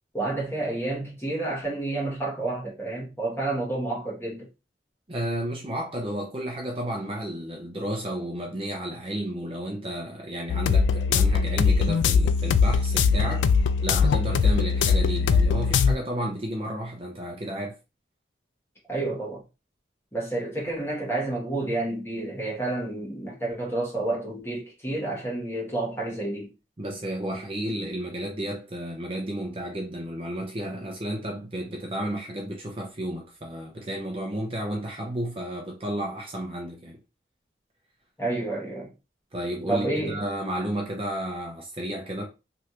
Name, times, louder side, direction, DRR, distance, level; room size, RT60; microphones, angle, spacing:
voice 1, 0.1-4.5 18.9-19.4 20.1-26.5 38.2-38.9 39.7-40.3, right 2 dB, 15° left, 1.3 m, -30 dB
voice 2, 5.1-13.5 13.8-17.7 26.8-37.0 39.3-42.2, right 1 dB, 30° right, 0.6 m, -32 dB
sound 1, 10.5-16.0, left 5 dB, 85° left, 0.3 m, -21 dB
3.2 x 2.5 x 2.9 m
head